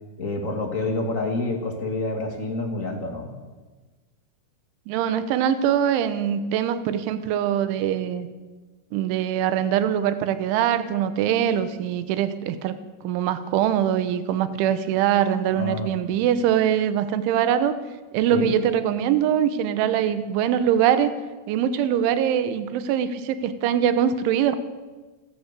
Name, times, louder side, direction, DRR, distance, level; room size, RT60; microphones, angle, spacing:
voice 1, 0.2-3.3 15.5-15.9 18.3-18.5, left 2 dB, 50° left, 3 dB, 0.9 m, -28 dB
voice 2, 4.9-8.3 8.9-12.8 13.0-17.8 18.1-21.1 21.5-24.6, right 9 dB, 80° right, 11 dB, 3.5 m, -23 dB
28.5 x 11.0 x 8.3 m, 1.3 s
omnidirectional pair, 5.4 m